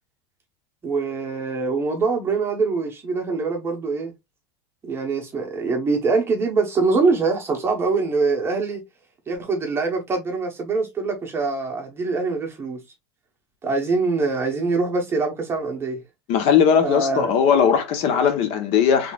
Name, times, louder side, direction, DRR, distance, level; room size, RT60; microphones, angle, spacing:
voice 1, 0.8-4.1 4.8-8.8 9.3-12.8 13.6-16.0 16.8-17.3, right 4 dB, 20° right, 1.0 m, -23 dB
voice 2, 16.3-19.1, left 7 dB, 50° left, 0.9 m, -18 dB
4.0 x 3.2 x 2.3 m
supercardioid pair, 150°, 14 cm